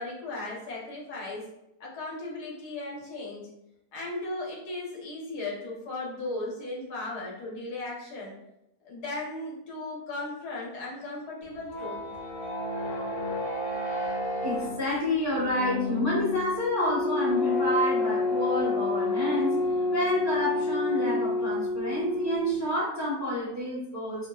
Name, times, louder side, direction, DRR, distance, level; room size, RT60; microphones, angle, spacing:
voice 1, 0.0-1.5 1.8-3.5 3.9-8.4 8.8-12.0, left 2 dB, 80° left, -3 dB, 1.6 m, -36 dB
sound 1, 11.4-22.7, left 2 dB, 60° left, 1.7 m, -29 dB
voice 2, 14.4-24.3, left 1 dB, 15° right, -7 dB, 0.6 m, -29 dB
5.7 x 2.5 x 2.3 m, 0.85 s
omnidirectional pair, 1.7 m